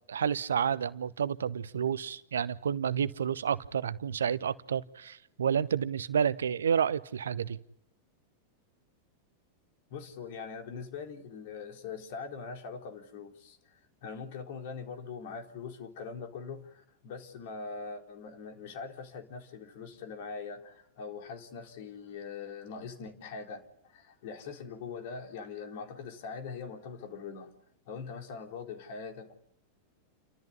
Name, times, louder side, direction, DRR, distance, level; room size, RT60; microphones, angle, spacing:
voice 1, 0.1-7.6, right 7 dB, 65° right, 18 dB, 0.8 m, -30 dB
voice 2, 9.9-27.5 27.9-29.3, left 5 dB, 50° left, 3 dB, 4.1 m, -42 dB
29.5 x 13.5 x 9.9 m, 0.77 s
figure-of-eight pair, 90°, 0 cm